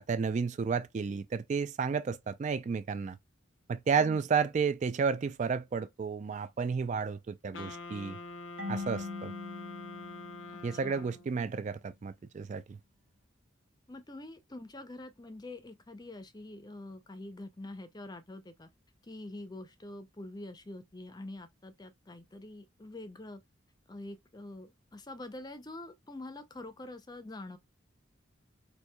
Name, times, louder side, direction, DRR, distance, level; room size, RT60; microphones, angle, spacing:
voice 1, 0.1-3.2 3.7-8.2 8.7-9.3 10.6-12.8, right 5 dB, 40° right, 0.3 m, -32 dB
Wind instrument woodwind instrument, 7.5-11.4, left 3 dB, 70° left, 0.6 m, -45 dB
Marimba xylophone / Wood, 8.6-11.3, left 3 dB, 90° right, 1.1 m, -42 dB
voice 2, 10.5-11.1 13.9-18.7 19.0-23.4 23.9-27.6, left 2 dB, 20° left, 0.5 m, -45 dB
4.4 x 2.6 x 2.2 m
head